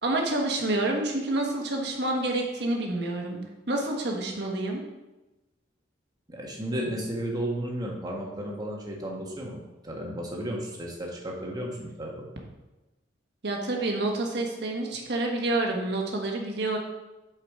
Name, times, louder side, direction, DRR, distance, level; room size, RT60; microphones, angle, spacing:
voice 1, 0.0-3.4 3.7-4.8 13.4-16.8, right 2 dB, 60° right, 1 dB, 1.3 m, -28 dB
voice 2, 6.3-12.3, right 1 dB, 20° right, -2 dB, 1.4 m, -33 dB
7.2 x 4.8 x 4.8 m, 1.1 s
head